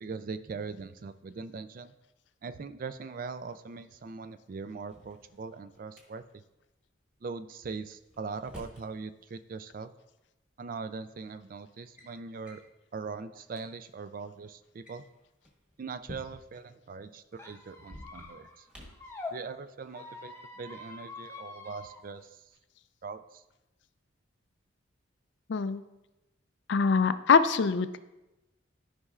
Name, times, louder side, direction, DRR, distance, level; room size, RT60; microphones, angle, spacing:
voice 1, 0.0-1.9 2.4-6.2 7.2-9.9 10.6-12.6 12.9-15.0 15.8-18.7 19.3-22.4 23.0-23.4, right 4 dB, 45° right, 12 dB, 0.3 m, -41 dB
Drawer open or close, 4.7-6.0 7.7-8.9 10.2-10.3 11.1-11.3 11.7-12.1 12.4-12.7 13.2-13.3 13.5-13.6 14.6-16.6 17.8-19.1, equal, 5° right, 1.3 m, -50 dB
Squeak, 17.3-19.3 19.9-22.0, left 3 dB, 15° left, 0.6 m, -45 dB
voice 2, 25.5-25.8 26.7-28.0, left 5 dB, 60° left, 12 dB, 0.4 m, -23 dB
13.0 x 5.5 x 2.4 m, 0.99 s
head